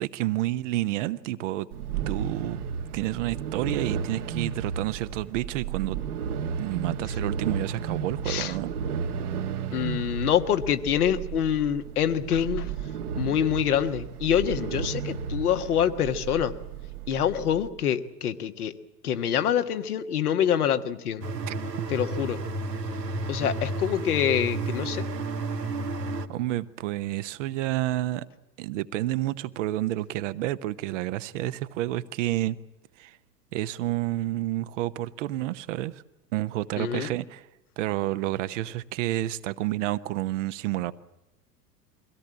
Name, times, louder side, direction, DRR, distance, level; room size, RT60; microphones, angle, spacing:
voice 1, 0.0-1.7 2.1-2.6 2.9-6.0 6.6-8.7 21.5-21.6 26.0-28.2 28.6-32.6 33.0-33.2 33.5-36.0 36.3-37.4 37.8-40.9, right 15 dB, 50° right, 1.0 m, -29 dB
sound 1, 1.7-17.7, right 7 dB, 65° right, 1.6 m, -33 dB
voice 2, 9.7-12.7 13.1-16.5 17.1-18.7 19.0-21.2 21.9-22.4 23.3-25.0 36.8-37.1, left 9 dB, 65° left, 1.6 m, -26 dB
sound 2, 21.2-26.3, right 2 dB, 80° right, 1.4 m, -31 dB
23.5 x 17.0 x 8.9 m
figure-of-eight pair, 85°, 48 cm